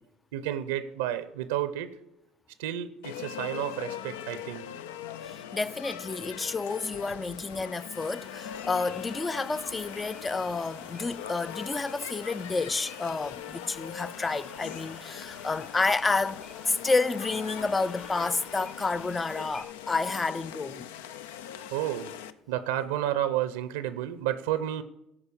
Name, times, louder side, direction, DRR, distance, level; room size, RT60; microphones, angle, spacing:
voice 1, 0.3-1.9 2.6-4.7 21.7-22.2 22.5-24.8, right 12 dB, 85° right, 0.6 m, -31 dB
sound 1, 3.0-22.3, left 10 dB, 85° left, 0.4 m, -41 dB
voice 2, 5.2-20.9, left 3 dB, 25° left, 0.4 m, -30 dB
sound 2, 7.9-19.6, left 3 dB, 45° left, 1.7 m, -49 dB
12.5 x 5.0 x 7.0 m
hypercardioid pair, 75°, 0 cm